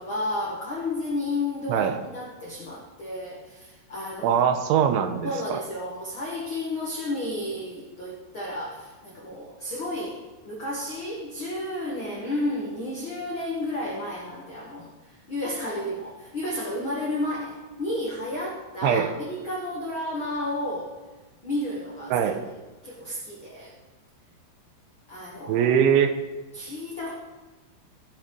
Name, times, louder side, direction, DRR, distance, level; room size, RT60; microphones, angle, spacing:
voice 1, 0.0-4.6 5.2-20.9 21.4-23.7 25.1-25.7 26.5-27.1, left 1 dB, 70° left, -4 dB, 1.2 m, -32 dB
voice 2, 1.7-2.0 4.2-5.6 18.8-19.1 22.1-22.4 25.5-26.2, right 8 dB, 90° right, 8 dB, 3.2 m, -22 dB
17.0 x 6.0 x 5.3 m, 1.2 s
omnidirectional pair, 5.3 m